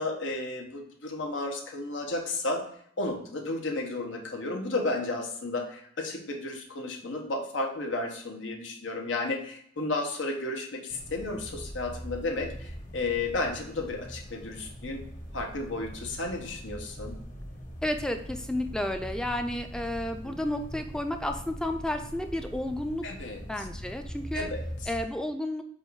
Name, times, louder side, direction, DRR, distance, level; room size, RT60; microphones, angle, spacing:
voice 1, 0.0-2.7 3.0-15.0 15.3-17.1 20.2-20.3 23.0-23.7 24.3-24.9, left 2 dB, 85° left, 2 dB, 1.2 m, -33 dB
sound 1, 10.9-25.0, equal, 45° left, 1.2 m, -42 dB
voice 2, 17.8-23.1 23.5-24.5 24.9-25.6, left 1 dB, 5° left, 6 dB, 0.5 m, -32 dB
7.8 x 2.6 x 4.7 m, 0.65 s
head